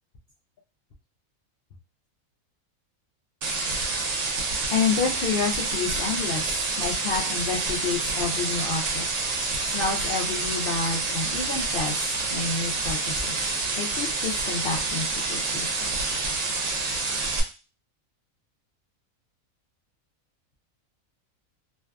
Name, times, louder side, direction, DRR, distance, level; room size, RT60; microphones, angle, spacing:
sound 1, 3.4-17.4, right 3 dB, 75° right, 0.9 m, -28 dB
voice 1, 4.7-9.0 9.7-13.4 13.8-16.3, left 5 dB, 70° left, -1 dB, 0.5 m, -29 dB
2.6 x 2.3 x 2.2 m, 0.32 s
omnidirectional pair, 1.4 m